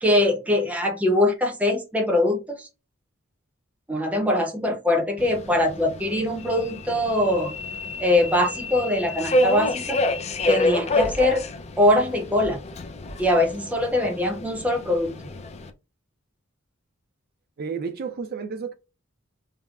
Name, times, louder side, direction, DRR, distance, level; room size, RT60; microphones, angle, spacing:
voice 1, 0.0-2.7 3.9-7.5 8.0-10.0 10.5-11.4 11.8-12.6 13.2-15.2, left 1 dB, 5° right, 0.7 m, -22 dB
Subway metro underground, 5.2-15.7, left 2 dB, 30° left, 0.4 m, -28 dB
voice 2, 17.6-18.7, right 5 dB, 45° right, 0.5 m, -31 dB
3.5 x 2.1 x 2.3 m
head